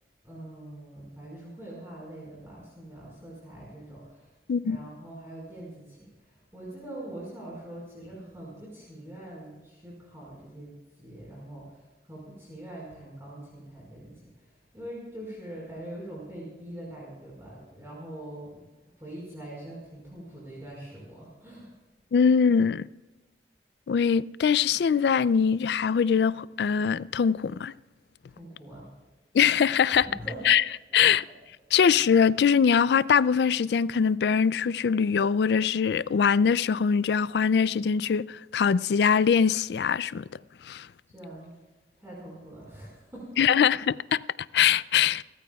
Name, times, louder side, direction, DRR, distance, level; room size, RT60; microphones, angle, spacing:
voice 1, 0.2-4.3 4.6-18.6 19.0-21.7 28.3-28.9 30.0-30.4 30.9-31.1 41.1-41.6 42.0-43.5, right 1 dB, 15° right, 4.9 m, -43 dB
voice 2, 22.1-22.9 23.9-27.7 29.3-30.1 30.4-30.6 30.9-31.2 31.7-40.3 40.6-40.9 43.4-43.8 44.1-44.2 44.5-45.2, left 7 dB, 75° left, 0.3 m, -22 dB
28.5 x 14.0 x 2.3 m
head